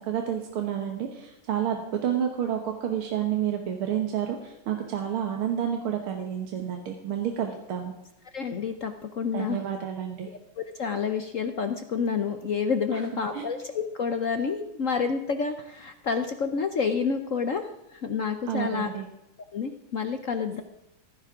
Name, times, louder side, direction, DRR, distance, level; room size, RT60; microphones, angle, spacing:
voice 1, 0.0-7.9 9.3-10.3 12.9-13.0 13.3-13.5 18.5-19.1, right 9 dB, 90° right, 3 dB, 2.2 m, -30 dB
voice 2, 8.3-9.6 10.6-18.9 19.5-20.6, left 5 dB, 55° left, 7 dB, 0.9 m, -29 dB
16.5 x 14.5 x 3.7 m, 0.85 s
omnidirectional pair, 2.3 m